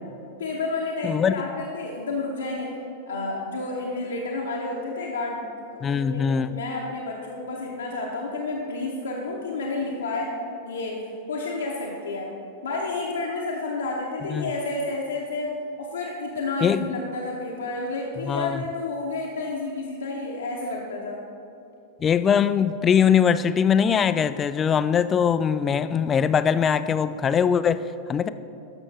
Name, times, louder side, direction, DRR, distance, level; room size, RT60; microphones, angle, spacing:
voice 1, 0.4-2.7 3.1-5.4 5.7-10.3 10.6-11.0 11.3-12.3 12.6-15.5 15.8-21.2, left 3 dB, 70° left, -3 dB, 0.9 m, -30 dB
voice 2, 1.0-1.3 5.8-6.6 14.3-14.5 16.6-16.8 18.2-18.6 22.0-27.8 28.1-28.3, left 7 dB, 25° left, 13 dB, 0.3 m, -21 dB
12.5 x 6.2 x 3.3 m, 2.7 s
figure-of-eight pair, 90°, 0 cm